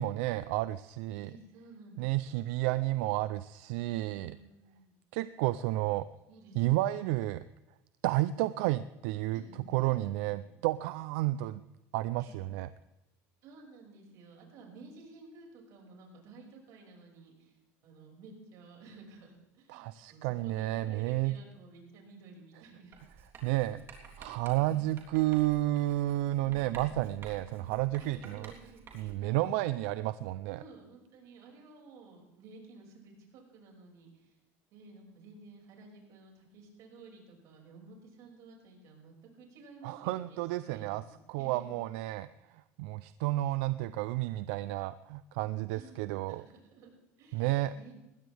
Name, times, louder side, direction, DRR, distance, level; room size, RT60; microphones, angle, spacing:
voice 1, 0.0-1.3 2.0-4.3 5.1-6.1 6.6-7.4 8.0-9.4 9.7-11.6 11.9-12.7 19.7-21.4 23.4-23.8 24.2-28.5 28.9-30.6 39.8-41.0 41.3-42.3 42.8-46.5 47.3-47.7, right 16 dB, 80° right, 14 dB, 0.5 m, -31 dB
voice 2, 1.2-2.3 4.1-5.0 6.3-6.6 6.8-7.1 9.3-10.6 12.2-12.4 13.4-17.6 17.8-23.0 23.7-23.8 24.6-24.8 26.4-29.7 30.5-34.4 34.7-41.6 45.7-46.0 46.3-47.9, right 3 dB, 55° right, 0 dB, 5.8 m, -54 dB
Writing, 22.9-29.3, right 5 dB, 40° right, 3.4 m, -52 dB
20.5 x 15.5 x 3.5 m, 0.97 s
cardioid pair, 140°, 7 cm